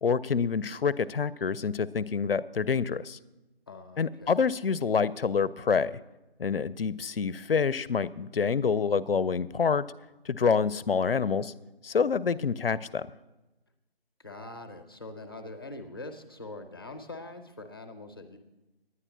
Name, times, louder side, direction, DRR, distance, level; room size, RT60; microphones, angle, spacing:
voice 1, 0.0-3.2 4.0-6.0 6.4-9.8 10.3-11.5 11.8-13.1, left 5 dB, 70° left, 18 dB, 0.6 m, -27 dB
voice 2, 3.7-4.5 14.2-18.4, left 2 dB, 25° left, 6 dB, 0.7 m, -43 dB
10.0 x 9.8 x 6.0 m, 1.0 s
figure-of-eight pair, 165°, 30 cm